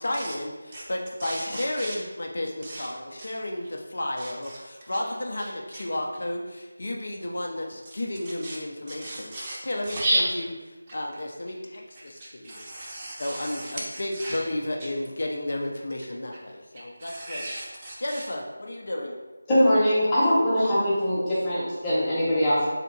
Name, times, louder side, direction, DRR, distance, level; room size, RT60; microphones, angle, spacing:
voice 1, 0.0-9.3 9.6-10.5 10.9-12.7 13.2-17.5 18.0-19.2, left 1 dB, 60° left, 0 dB, 0.6 m, -32 dB
voice 2, 1.2-2.0 2.6-2.9 3.2-3.4 4.2-5.1 5.4-5.9 7.9-8.0 8.4-8.6 9.0-9.6 9.8-10.3 11.9-14.4 14.8-14.9 16.7-18.3, right 1 dB, 25° right, -5 dB, 0.6 m, -34 dB
voice 3, 19.5-22.7, equal, 15° left, -10 dB, 1.0 m, -22 dB
3.3 x 2.8 x 3.9 m, 1.2 s
figure-of-eight pair, 170°, 0 cm